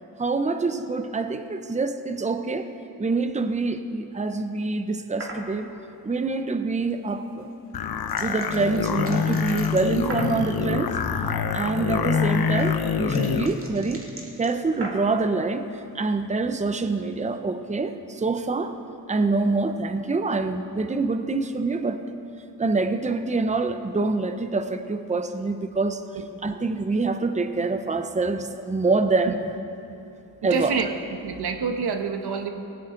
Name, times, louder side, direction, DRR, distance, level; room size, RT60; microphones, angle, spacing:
voice 1, 0.2-2.7 3.0-5.7 6.0-7.5 8.2-10.9 11.5-14.0 14.4-18.7 19.1-22.0 22.6-26.0 26.4-29.4 30.4-30.9, right 3 dB, 20° right, 9 dB, 0.8 m, -26 dB
sound 1, 5.2-5.5 7.4-10.5 12.0-15.2, right 2 dB, 35° right, 2.5 m, -39 dB
sound 2, 7.7-13.5, left 6 dB, 70° left, 0.9 m, -25 dB
voice 2, 30.4-30.9 31.2-32.5, right 5 dB, 85° right, 6 dB, 1.2 m, -26 dB
18.0 x 17.5 x 3.9 m, 2.8 s
cardioid pair, 85°, 38 cm